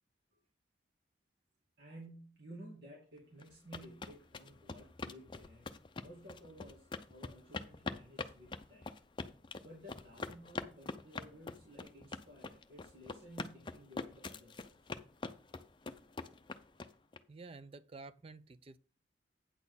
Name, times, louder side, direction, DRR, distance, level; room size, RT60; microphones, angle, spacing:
voice 1, 1.8-9.0 9.6-14.8, equal, 70° right, 2.4 m, -55 dB
sound 1, 3.4-17.2, left 3 dB, 25° left, 0.5 m, -44 dB
voice 2, 17.3-18.8, right 3 dB, 30° right, 0.4 m, -51 dB
9.0 x 4.3 x 7.0 m
head